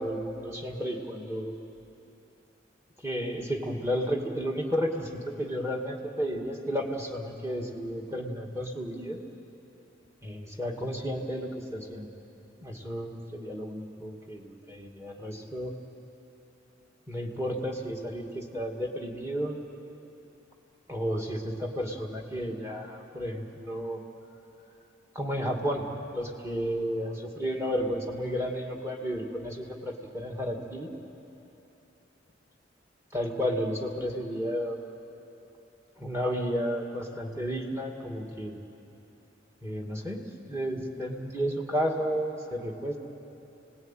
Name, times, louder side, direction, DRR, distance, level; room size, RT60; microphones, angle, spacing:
voice 1, 0.0-1.6 3.0-9.2 10.2-12.1 12.6-15.8 17.1-19.6 20.9-24.0 25.1-25.9 26.1-30.9 33.1-34.8 36.0-38.6 39.6-43.0, equal, 15° right, 1 dB, 2.3 m, -32 dB
28.0 x 19.5 x 9.1 m, 3.0 s
head